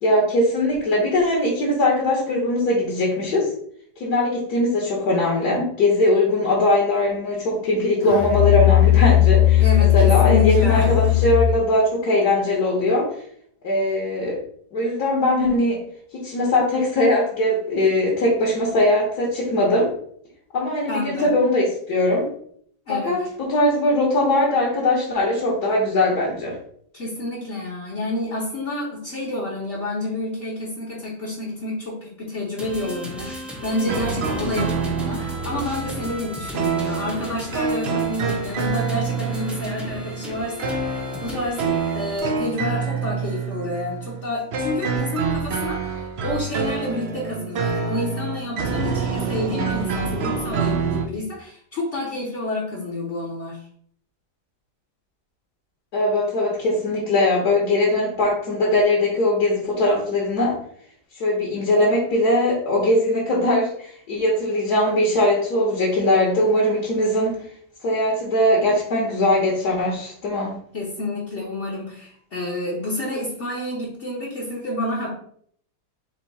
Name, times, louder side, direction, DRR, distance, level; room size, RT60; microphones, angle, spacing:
voice 1, 0.0-3.5 4.0-13.1 13.6-14.4 14.7-15.8 16.1-19.9 20.5-22.3 22.9-26.6 55.9-60.6 61.2-67.4 67.8-70.6, left 1 dB, 65° left, -4 dB, 1.7 m, -20 dB
Musical instrument, 8.0-11.6, left 13 dB, 30° left, 0.8 m, -17 dB
voice 2, 9.6-11.1 20.9-21.4 22.9-23.3 26.9-41.6 41.9-53.6 70.7-75.1, left 2 dB, 50° left, -5 dB, 1.1 m, -29 dB
sound 1, 32.6-42.2, equal, ahead, 0.5 m, -36 dB
sound 2, 33.9-51.1, right 5 dB, 80° right, 0.5 m, -27 dB
4.6 x 2.8 x 4.0 m, 0.62 s
omnidirectional pair, 1.8 m